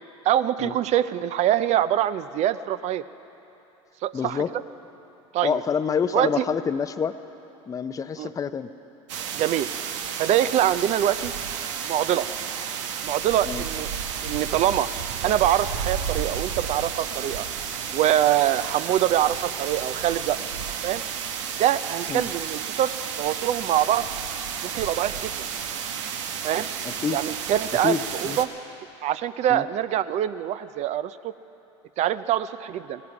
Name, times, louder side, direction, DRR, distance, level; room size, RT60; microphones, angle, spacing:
voice 1, 0.2-3.0 4.0-4.4 5.3-5.6 6.1-6.4 8.2-8.3 9.3-9.7 10.2-11.3 11.8-12.2 13.0-13.9 14.2-14.9 15.2-17.5 17.9-20.4 20.8-21.0 21.6-22.9 23.2-24.1 24.6-25.4 26.4-26.7 27.1-28.5 29.0-31.3 32.0-33.0, right 11 dB, 45° right, 14 dB, 0.5 m, -24 dB
voice 2, 4.1-4.5 5.4-7.2 7.7-8.7 13.4-13.6 22.1-22.3 27.0-27.2 27.8-28.4 29.5-29.6, left 6 dB, 20° left, 11 dB, 0.6 m, -27 dB
sound 1, 9.1-28.5, right 7 dB, 80° right, 1.0 m, -32 dB
18.0 x 16.5 x 4.8 m, 2.9 s
hypercardioid pair, 95°, 16 cm